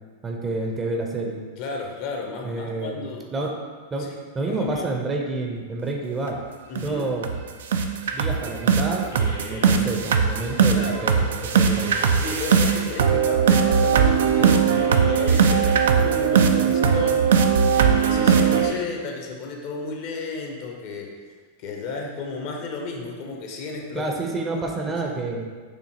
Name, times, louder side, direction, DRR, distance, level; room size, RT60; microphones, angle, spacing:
voice 1, 0.2-1.4 2.4-3.6 3.9-4.1 4.3-6.4 6.8-7.3 8.1-11.2 11.5-11.9 23.9-25.5, right 2 dB, 20° right, 1 dB, 0.6 m, -29 dB
voice 2, 1.6-3.5 4.5-4.9 6.7-7.1 10.7-11.0 12.1-17.3 18.0-21.2 21.6-24.1 24.5-24.6 24.9-25.0, left 4 dB, 45° left, 1 dB, 0.6 m, -33 dB
sound 1, 6.3-6.4 6.8-6.9 7.2-7.4 7.7-18.7, right 6 dB, 60° right, 0.3 m, -19 dB
sound 2, 9.1-9.7 11.7-12.7 14.7-15.7 17.7-18.8, equal, 80° left, 0.9 m, -40 dB
6.4 x 2.7 x 2.8 m, 1.5 s
figure-of-eight pair, 90°, 0 cm